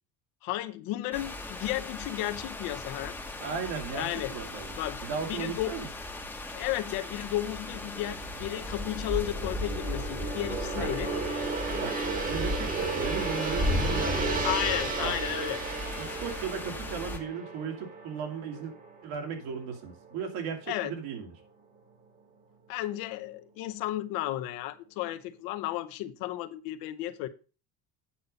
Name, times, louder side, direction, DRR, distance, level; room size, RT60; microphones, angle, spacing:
voice 1, 0.4-3.1 3.9-4.3 4.8-5.0 5.3-5.8 6.5-11.1 14.4-15.6 20.7-20.9 22.7-27.3, left 15 dB, 70° left, 0.9 m, -33 dB
sound 1, 1.1-17.2, left 1 dB, 5° left, 0.9 m, -36 dB
voice 2, 3.4-5.9 10.8-10.9 11.8-12.0 12.2-14.6 15.0-15.2 16.0-18.7 19.0-21.3, right 6 dB, 75° right, 2.6 m, -36 dB
Gong, 7.3-19.7 20.1-20.3, right 4 dB, 25° right, 1.3 m, -34 dB
8.7 x 5.5 x 5.1 m
cardioid pair, 175°, 36 cm